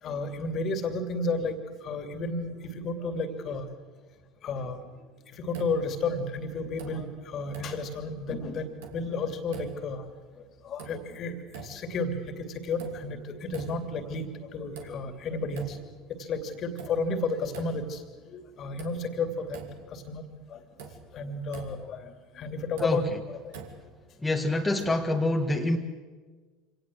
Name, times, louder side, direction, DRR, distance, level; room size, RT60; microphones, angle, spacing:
voice 1, 0.0-3.7 4.4-4.8 5.3-10.0 10.6-15.8 16.1-19.6 19.9-20.2 20.5-23.6, left 3 dB, 45° left, 9 dB, 2.8 m, -32 dB
sound 1, 5.5-6.2 6.6-7.2 7.5-8.2 8.6-9.2 9.5-10.1 10.5-11.2 11.5-12.1 12.5-13.2 13.5-14.1 14.5-15.2 15.5-16.1 16.5-18.0 18.4-18.5 18.8-20.1 20.3-20.4 20.8-22.0 22.5-24.0 24.8-25.2, right 5 dB, 70° right, 2.7 m, -45 dB
voice 2, 24.2-25.8, left 2 dB, 10° left, 2 dB, 1.8 m, -26 dB
25.5 x 18.0 x 7.8 m, 1.4 s
hypercardioid pair, 70°, 0 cm